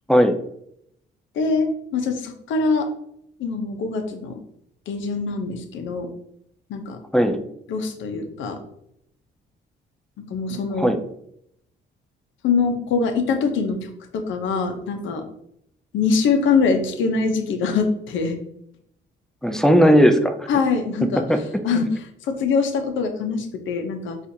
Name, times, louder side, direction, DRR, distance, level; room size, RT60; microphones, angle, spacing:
voice 1, 1.3-2.9 3.4-4.4 4.9-6.1 6.7-7.0 7.7-8.6 10.2-10.9 12.4-15.2 15.9-18.4 20.5-21.2 21.6-24.2, left 4 dB, 75° left, 6 dB, 0.6 m, -23 dB
voice 2, 7.1-7.4 10.8-11.0 19.4-20.3 21.3-21.8, equal, 5° left, 7 dB, 0.4 m, -17 dB
4.2 x 2.4 x 2.6 m, 0.74 s
cardioid pair, 90°, 20 cm